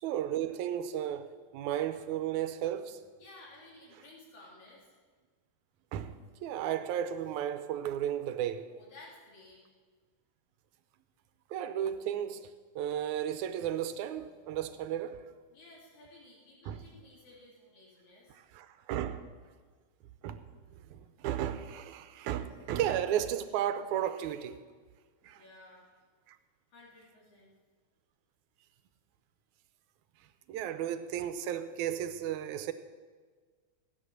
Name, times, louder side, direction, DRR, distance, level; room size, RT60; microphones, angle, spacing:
voice 1, 0.0-3.0 4.0-4.1 5.9-6.2 6.4-8.7 11.5-15.2 16.7-16.9 18.3-19.2 20.2-20.4 20.7-24.6 25.2-25.5 26.3-26.4 30.5-32.7, right 10 dB, 90° right, 2.1 m, -34 dB
voice 2, 3.2-4.9 8.7-9.6 15.5-18.4 20.9-21.0 25.3-25.9 26.7-27.5, left 2 dB, 85° left, 4.5 m, -55 dB
16.0 x 9.2 x 6.4 m
omnidirectional pair, 3.3 m